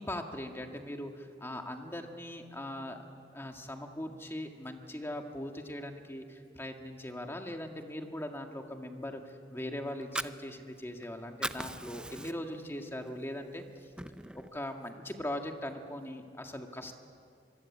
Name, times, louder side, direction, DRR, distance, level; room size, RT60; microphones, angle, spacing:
voice 1, 0.0-3.0 3.3-9.2 9.5-13.6 14.5-16.9, left 1 dB, 15° left, 4 dB, 1.8 m, -40 dB
Fire, 9.9-11.0 11.3-12.6 13.1-13.2 13.6-14.6, right 1 dB, 5° right, 0.5 m, -39 dB
24.5 x 23.0 x 8.6 m, 2.4 s
head